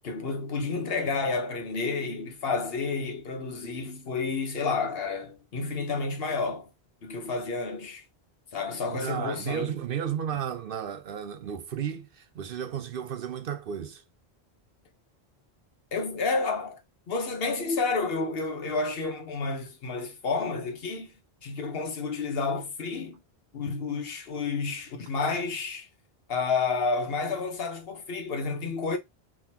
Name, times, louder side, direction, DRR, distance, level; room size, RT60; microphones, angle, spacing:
voice 1, 0.0-6.7 7.0-8.1 8.5-9.7 15.9-16.8 17.1-21.1 21.4-23.2 23.5-25.9 26.3-29.0, left 4 dB, 65° left, 1.1 m, -30 dB
voice 2, 8.9-14.0, right 8 dB, 65° right, 0.8 m, -33 dB
3.6 x 2.9 x 2.8 m
omnidirectional pair, 1.1 m